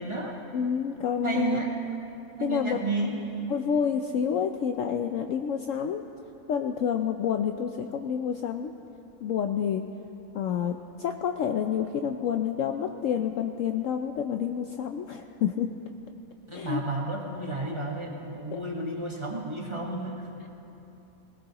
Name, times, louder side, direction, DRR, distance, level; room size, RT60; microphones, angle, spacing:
voice 1, 0.0-0.4 1.2-1.7 2.4-3.2 16.5-20.3, right 2 dB, 20° right, -2 dB, 1.3 m, -32 dB
voice 2, 0.5-1.6 2.4-2.8 3.5-6.0 6.5-8.7 9.2-9.8 10.3-15.7 16.5-16.8 18.5-18.6, left 8 dB, 70° left, 5 dB, 0.8 m, -28 dB
20.0 x 17.5 x 2.9 m, 2.9 s
omnidirectional pair, 1.6 m